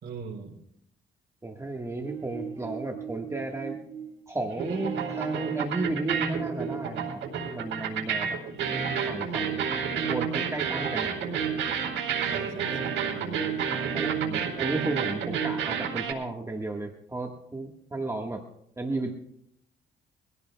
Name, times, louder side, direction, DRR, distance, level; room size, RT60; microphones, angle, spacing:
voice 1, 0.0-0.6 12.3-14.0, right 5 dB, 55° right, -5 dB, 3.3 m, -41 dB
voice 2, 1.4-3.8 4.3-7.2 7.4-8.4 9.1-9.6 10.0-11.2 13.9-18.4 18.8-19.1, right 2 dB, 15° right, 1 dB, 1.5 m, -33 dB
sound 1, 2.0-4.2 4.5-16.1, right 7 dB, 80° right, 4.0 m, -30 dB
24.0 x 16.5 x 2.3 m, 0.74 s
cardioid pair, 90°, 20 cm